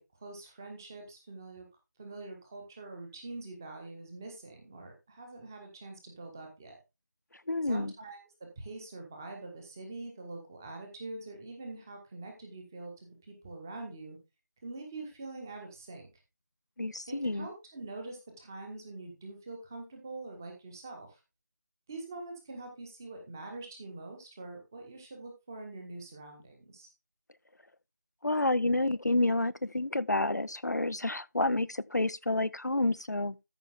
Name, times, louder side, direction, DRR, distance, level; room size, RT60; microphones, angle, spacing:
voice 1, 0.0-1.7 2.0-6.8 7.6-14.2 14.6-16.1 17.1-21.2 21.9-26.9, right 2 dB, 10° right, 1.3 m, -44 dB
voice 2, 7.5-7.9 16.8-17.5 28.2-33.4, left 2 dB, 65° left, 0.6 m, -29 dB
13.5 x 5.7 x 3.6 m
figure-of-eight pair, 170°, 10 cm